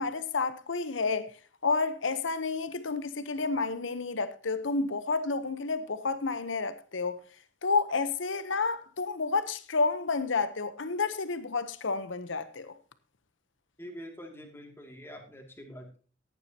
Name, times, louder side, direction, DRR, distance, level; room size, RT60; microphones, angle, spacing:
voice 1, 0.0-1.3 1.6-7.2 7.6-12.8, left 4 dB, 75° left, 0.9 m, -30 dB
voice 2, 13.8-16.0, equal, 10° left, 2.4 m, -45 dB
15.0 x 10.5 x 2.9 m
head